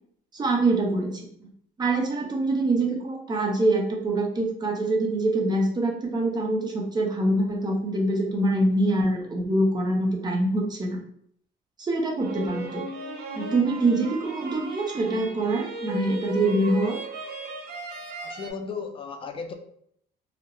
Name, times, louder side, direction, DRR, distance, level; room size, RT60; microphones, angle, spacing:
voice 1, 0.3-1.5 1.8-11.0 11.8-12.8 13.3-17.0, right 2 dB, 25° right, 0 dB, 0.6 m, -25 dB
sound 1, 12.2-18.5, right 2 dB, 70° right, 0.5 m, -36 dB
voice 2, 18.2-19.5, left 5 dB, 30° left, 6 dB, 0.4 m, -35 dB
2.3 x 2.1 x 2.9 m, 0.67 s
cardioid pair, 110°, 17 cm